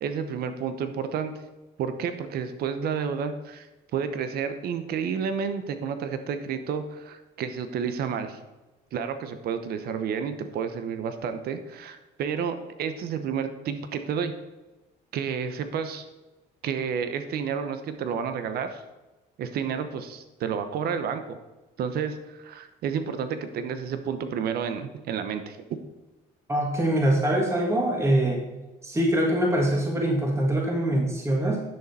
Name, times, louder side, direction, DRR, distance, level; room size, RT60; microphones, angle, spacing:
voice 1, 0.0-1.4 1.8-3.7 3.9-8.4 8.9-14.3 15.1-16.0 16.6-18.8 19.4-21.4 21.8-25.6, right 7 dB, 65° right, 9 dB, 0.9 m, -30 dB
voice 2, 26.5-28.4 28.8-31.6, right 1 dB, 15° right, 0 dB, 1.6 m, -23 dB
10.0 x 6.7 x 4.2 m, 1.1 s
cardioid pair, 110°, 17 cm